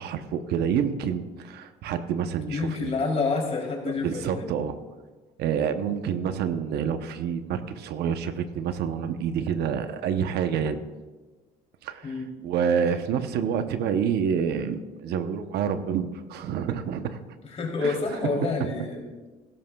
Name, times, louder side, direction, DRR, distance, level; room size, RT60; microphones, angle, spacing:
voice 1, 0.0-2.9 4.0-4.8 5.4-10.8 11.8-12.2 12.4-17.2 17.8-18.0 18.4-18.9, right 7 dB, 75° right, 9 dB, 0.8 m, -28 dB
voice 2, 2.5-4.5 12.0-12.3 17.5-19.0, left 4 dB, 40° left, 0 dB, 3.1 m, -28 dB
16.0 x 12.5 x 2.3 m, 1.3 s
cardioid pair, 110°, 17 cm